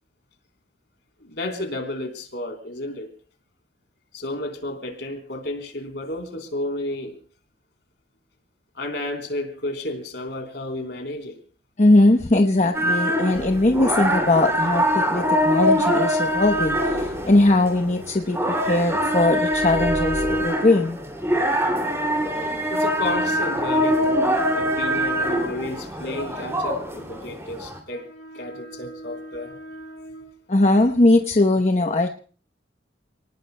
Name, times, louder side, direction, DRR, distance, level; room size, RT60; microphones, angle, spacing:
voice 1, 1.2-3.1 4.1-7.2 8.8-11.4 22.7-30.3, left 1 dB, 65° left, 3.6 m, -32 dB
voice 2, 11.8-21.0 30.5-32.1, left 2 dB, 40° left, 0.9 m, -20 dB
sound 1, 12.7-27.8, equal, 15° right, 2.6 m, -23 dB
sound 2, 13.3-20.5, equal, 65° right, 5.5 m, -36 dB
29.0 x 19.0 x 2.2 m
head